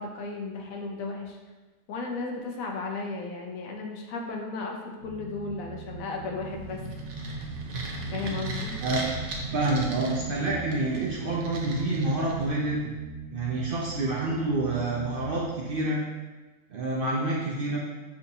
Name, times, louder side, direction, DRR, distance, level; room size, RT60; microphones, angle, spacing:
voice 1, 0.0-1.4 1.9-6.8 8.1-8.7, left 3 dB, 80° left, 1 dB, 1.1 m, -34 dB
sound 1, 5.0-15.4, right 3 dB, 45° left, 1.0 m, -41 dB
sound 2, 6.4-12.8, right 2 dB, 90° right, 1.1 m, -36 dB
voice 2, 9.5-12.9 13.3-16.0 16.7-17.8, right 2 dB, 60° right, -4 dB, 0.6 m, -28 dB
5.8 x 2.8 x 2.7 m, 1.2 s
omnidirectional pair, 1.4 m